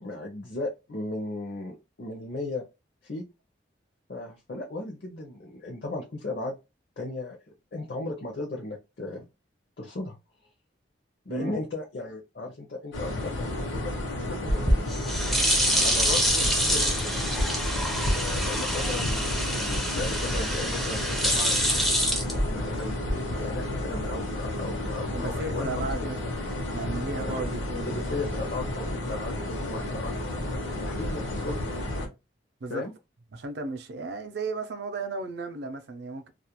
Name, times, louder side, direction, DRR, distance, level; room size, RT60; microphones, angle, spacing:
voice 1, 0.0-2.6 3.0-3.2 4.1-6.6 7.0-7.4 7.7-9.3 9.8-10.2 11.3-13.9 14.3-14.6 15.6-17.1 18.1-21.5 22.3-25.9 27.2-27.4 27.9-31.6 32.7-32.9, left 2 dB, 55° left, 0.5 m, -36 dB
sound 1, 12.9-32.1, left 1 dB, 85° left, 0.8 m, -31 dB
sound 2, 14.5-23.0, equal, ahead, 0.4 m, -26 dB
voice 2, 25.1-26.4 26.7-28.0 32.6-32.8 33.3-36.3, right 3 dB, 60° right, 0.5 m, -35 dB
2.3 x 2.1 x 2.8 m
head